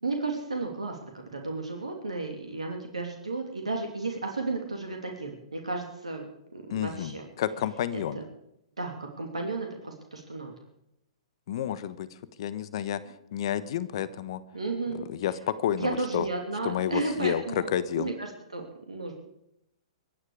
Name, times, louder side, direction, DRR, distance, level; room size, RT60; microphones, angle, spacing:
voice 1, 0.0-6.3 6.5-7.2 8.1-8.2 8.8-10.5 14.5-15.1 15.8-17.7 18.0-19.1, right 3 dB, 85° right, 3 dB, 3.0 m, -33 dB
voice 2, 6.7-8.2 11.5-12.1 12.4-13.0 13.3-14.4 15.1-16.2 16.6-18.1, left 10 dB, 55° left, 16 dB, 1.1 m, -30 dB
24.0 x 9.9 x 5.0 m, 0.80 s
figure-of-eight pair, 115°, 3 cm